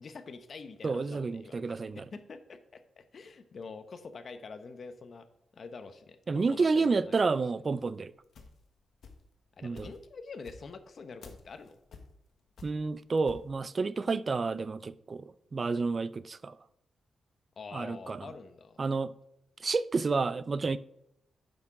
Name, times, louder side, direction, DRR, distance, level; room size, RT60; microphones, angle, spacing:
voice 1, 0.0-1.8 2.1-5.3 5.5-7.4 9.6-11.8 17.6-18.8, left 4 dB, 45° left, 0.8 m, -46 dB
voice 2, 0.8-2.0 6.3-8.1 9.6-9.9 12.6-15.2 15.5-16.6 17.7-18.3 18.8-19.1 19.6-20.8, right 4 dB, 35° right, 0.3 m, -30 dB
sound 1, 7.8-9.4 9.7-13.5, left 4 dB, 65° left, 1.2 m, -51 dB
8.7 x 6.0 x 3.7 m
cardioid pair, 120°, 0 cm